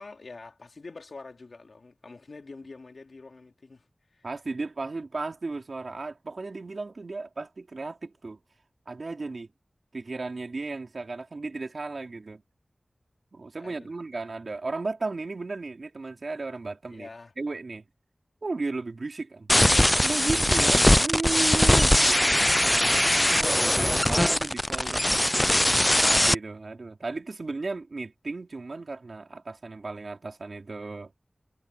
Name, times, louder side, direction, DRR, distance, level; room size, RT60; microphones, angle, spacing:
voice 1, 0.0-4.3 13.6-13.9 16.9-17.3, left 3 dB, 80° left, 2.8 m, -46 dB
voice 2, 4.2-8.4 8.9-9.5 9.9-12.4 13.3-17.1 17.4-17.8 18.4-19.5 20.0-22.5 23.2-25.1 25.8-31.1, right 3 dB, 70° right, 3.9 m, -35 dB
sound 1, 19.5-26.3, left 1 dB, 15° left, 0.3 m, -21 dB
wide cardioid pair, 55°, 0 cm